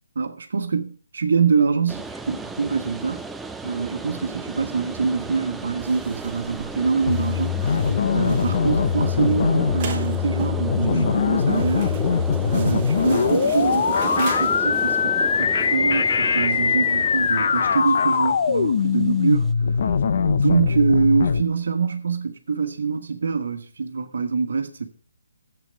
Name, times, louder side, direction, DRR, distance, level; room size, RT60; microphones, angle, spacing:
voice 1, 0.2-3.2 3.6-12.0 12.5-19.8 20.2-24.9, right 5 dB, 65° right, 1.4 m, -24 dB
Wood dust extractor vent opened and closed, 1.9-19.5, right 3 dB, 5° right, 0.4 m, -34 dB
sound 1, 5.8-15.0, right 6 dB, 25° right, 1.9 m, -41 dB
sound 2, 7.1-21.4, left 6 dB, 50° left, 0.8 m, -22 dB
11.0 x 8.1 x 5.3 m
hypercardioid pair, 160°, 0 cm